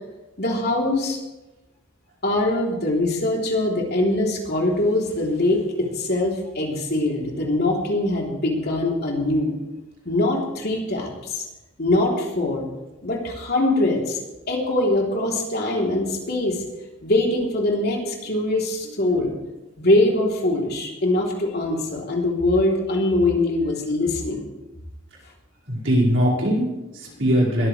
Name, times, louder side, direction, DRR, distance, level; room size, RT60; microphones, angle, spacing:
voice 1, 0.4-1.2 2.2-9.6 10.0-11.4 11.8-12.6 13.0-14.2 14.5-16.6 17.0-19.3 19.8-24.4, left 2 dB, 50° left, -2 dB, 3.4 m, -22 dB
voice 2, 25.7-27.7, equal, 60° right, -5 dB, 5.3 m, -21 dB
21.0 x 14.0 x 3.4 m, 1.0 s
head